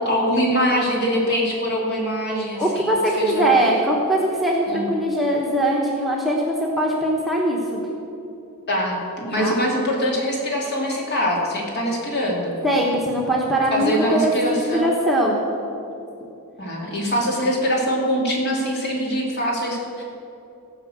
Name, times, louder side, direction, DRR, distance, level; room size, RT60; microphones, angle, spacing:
voice 1, 0.0-2.9 3.2-3.7 4.7-4.9 8.7-12.6 13.7-14.9 16.6-20.0, equal, 50° left, -2 dB, 2.8 m, -23 dB
voice 2, 2.6-7.8 9.4-9.6 12.6-15.4, right 1 dB, ahead, -3 dB, 1.2 m, -21 dB
16.0 x 5.8 x 7.7 m, 2.7 s
head